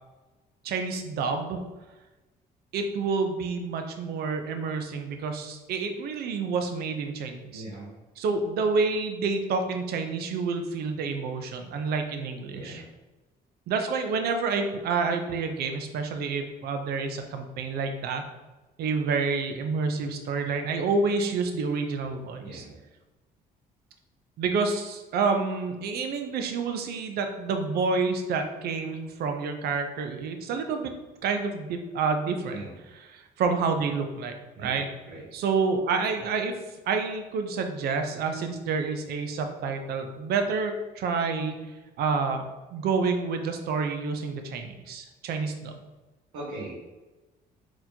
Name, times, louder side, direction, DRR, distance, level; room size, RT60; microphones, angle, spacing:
voice 1, 0.6-1.6 2.7-7.6 8.2-12.8 13.7-18.2 18.8-22.7 24.4-30.9 31.2-32.6 33.1-34.9 35.3-36.5 36.9-41.5 42.0-45.7, right 4 dB, 70° right, 5 dB, 0.6 m, -28 dB
voice 2, 7.5-7.9 12.5-12.8 22.4-22.7 32.5-32.7 34.5-34.8 35.1-35.2 46.3-46.7, right 2 dB, 85° right, -7 dB, 1.3 m, -39 dB
4.0 x 3.0 x 2.8 m, 1.1 s
cardioid pair, 110°, 17 cm